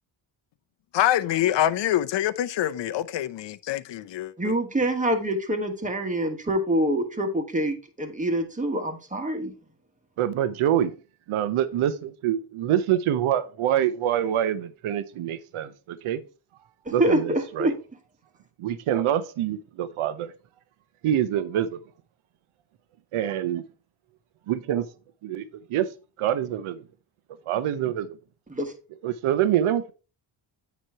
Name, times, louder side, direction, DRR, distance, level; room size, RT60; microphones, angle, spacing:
voice 1, 0.9-4.5, left 12 dB, 60° left, 0.7 m, -25 dB
voice 2, 4.4-9.5 16.8-17.7 28.5-28.7, right 1 dB, 15° right, 1.4 m, -25 dB
voice 3, 10.2-10.9 11.3-16.2 16.9-17.7 18.6-20.3 21.0-21.8 23.1-23.6 24.5-24.9 25.2-25.9 26.2-26.8 27.5-28.1 29.0-29.9, right 11 dB, 85° right, 0.8 m, -25 dB
9.2 x 3.1 x 5.5 m
cardioid pair, 120°, 49 cm